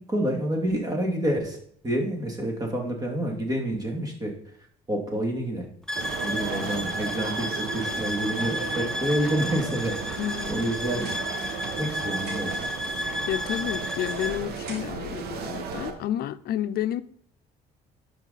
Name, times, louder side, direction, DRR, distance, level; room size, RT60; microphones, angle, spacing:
voice 1, 0.0-1.6 1.8-4.3 4.9-5.7 6.2-11.1 11.8-12.5, right 1 dB, 20° right, 2.4 m, -28 dB
sound 1, 5.9-14.4, equal, 5° left, 0.9 m, -32 dB
sound 2, 6.0-15.9, right 6 dB, 70° right, 1.2 m, -35 dB
voice 2, 10.2-10.5 13.0-17.0, left 11 dB, 65° left, 0.6 m, -30 dB
sound 3, 10.8-11.9 12.1-12.7 13.5-15.2, right 3 dB, 85° right, 3.7 m, -47 dB
12.0 x 4.8 x 4.1 m
cardioid pair, 110°, 17 cm